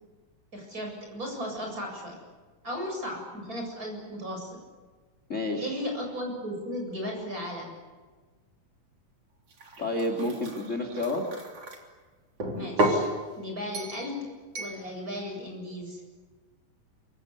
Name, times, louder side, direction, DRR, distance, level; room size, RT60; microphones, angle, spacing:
voice 1, 0.5-2.2 2.6-4.6 5.6-7.7 12.5-13.1 13.4-14.3 14.6-16.0, equal, 25° right, 1 dB, 8.2 m, -35 dB
voice 2, 5.3-5.8 9.8-11.3, left 2 dB, 25° left, 4 dB, 2.7 m, -30 dB
sound 1, 9.5-11.8 12.4-13.1 13.7-14.1 14.5-14.8, right 1 dB, 45° right, 4.3 m, -31 dB
27.5 x 24.5 x 8.3 m, 1.4 s
omnidirectional pair, 3.9 m